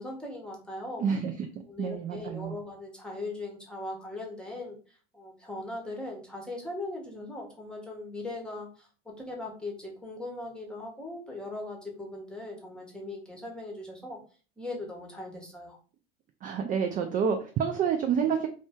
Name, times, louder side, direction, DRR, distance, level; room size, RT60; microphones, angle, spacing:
voice 1, 0.0-1.1 1.7-4.8 5.1-8.9 9.2-14.2 14.6-15.8, left 2 dB, 5° left, -1 dB, 1.1 m, -39 dB
voice 2, 1.0-1.3 1.8-2.6 16.4-18.5, right 7 dB, 30° right, 5 dB, 0.4 m, -28 dB
2.5 x 2.2 x 3.5 m, 0.38 s
hypercardioid pair, 85°, 30 cm